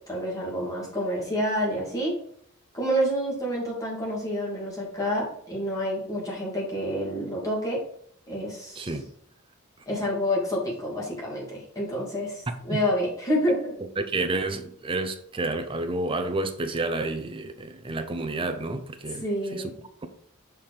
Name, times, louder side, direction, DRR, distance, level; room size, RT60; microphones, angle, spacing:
voice 1, 0.1-2.2 2.7-7.8 8.3-8.9 9.9-13.7 19.2-19.7, equal, 15° left, 2.4 m, -28 dB
voice 2, 8.8-9.1 12.5-12.8 14.0-19.3 19.5-19.7, right 2 dB, 25° right, 0.6 m, -30 dB
5.6 x 4.4 x 4.9 m
head